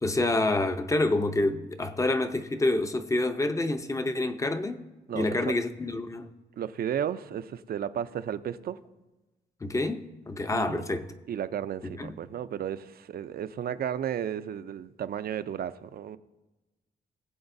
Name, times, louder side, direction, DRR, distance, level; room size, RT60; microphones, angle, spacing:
voice 1, 0.0-4.9 5.1-6.3 9.6-11.1 11.8-12.2, left 2 dB, 15° left, 0.6 m, -27 dB
voice 2, 5.1-5.5 6.6-8.8 10.5-10.9 11.3-16.2, right 9 dB, 55° right, 0.5 m, -33 dB
21.5 x 7.9 x 2.6 m
cardioid pair, 125°, 18 cm